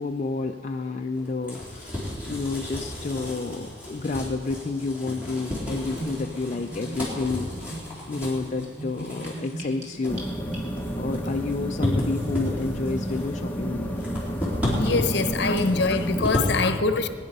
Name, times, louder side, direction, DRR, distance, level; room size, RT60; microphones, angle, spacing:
voice 1, 0.0-2.0 2.3-7.5 8.1-10.2 10.9-13.9, left 3 dB, 35° left, 3 dB, 0.4 m, -30 dB
sound 1, 1.1-16.6, left 1 dB, 5° right, 4.0 m, -33 dB
Gurgling / Bathtub (filling or washing), 6.0-11.0, right 1 dB, 35° right, 3.1 m, -38 dB
sound 2, 10.1-16.2, right 1 dB, 10° left, 0.9 m, -31 dB
voice 2, 14.8-17.1, left 3 dB, 60° left, 9 dB, 0.9 m, -24 dB
21.5 x 10.0 x 5.4 m, 2.1 s
head